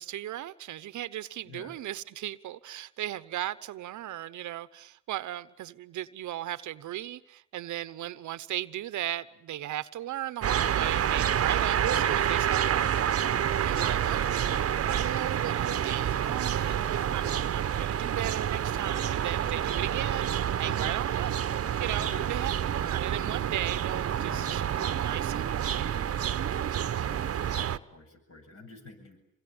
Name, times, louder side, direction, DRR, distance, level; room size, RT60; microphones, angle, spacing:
voice 1, 0.0-12.9 13.6-20.3 20.6-21.3 21.8-25.9, right 13 dB, 75° right, 1.0 m, -36 dB
voice 2, 1.4-1.8 11.7-12.0 13.7-14.4 20.6-20.9 22.0-22.2 24.3-24.6 27.3-29.2, left 3 dB, 50° left, 8.0 m, -47 dB
sound 1, 10.4-27.8, right 9 dB, 50° right, 1.1 m, -28 dB
27.5 x 23.5 x 8.8 m
cardioid pair, 90°, 30 cm